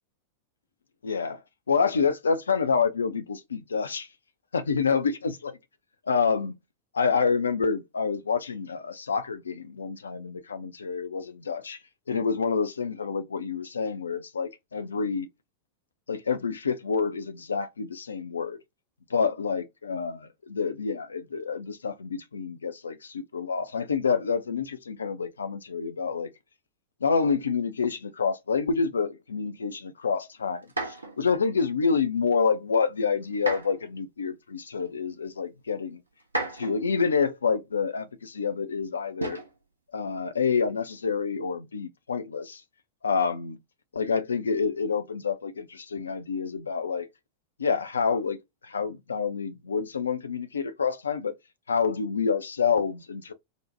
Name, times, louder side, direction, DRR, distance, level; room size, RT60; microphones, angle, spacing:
voice 1, 1.0-1.4 1.7-4.1 4.5-5.3 6.1-6.6 6.9-11.8 12.1-15.3 16.1-18.6 19.1-26.3 27.0-36.0 36.5-39.4 39.9-42.6 43.0-43.6 43.9-47.1 47.6-48.4 48.6-51.3 51.7-53.3, left 5 dB, 70° left, 0.4 m, -28 dB
sound 1, 30.6-31.2 33.3-33.9 34.9-35.0 36.2-36.9 39.2-39.6 40.8-41.2, right 2 dB, 80° right, 0.6 m, -33 dB
2.6 x 2.1 x 2.6 m
figure-of-eight pair, 90°, 0 cm